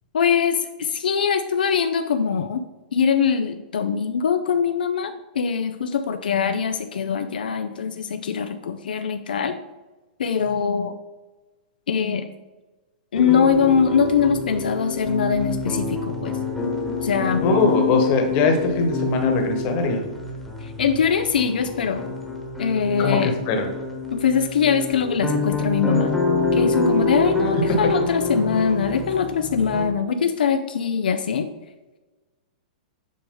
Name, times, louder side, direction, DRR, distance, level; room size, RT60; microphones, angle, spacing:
voice 1, 0.1-2.6 2.9-9.6 10.2-10.9 11.9-12.3 13.1-16.3 17.0-17.5 20.6-22.0 22.6-23.4 24.1-26.1 26.5-31.5, left 6 dB, 90° left, 7 dB, 0.5 m, -22 dB
sound 1, 13.1-29.9, left 3 dB, 5° left, 1.1 m, -27 dB
voice 2, 17.4-20.0 23.0-23.7 27.7-27.9, left 3 dB, 40° left, 4 dB, 1.3 m, -21 dB
7.7 x 4.8 x 3.8 m, 1.2 s
hypercardioid pair, 145°, 5 cm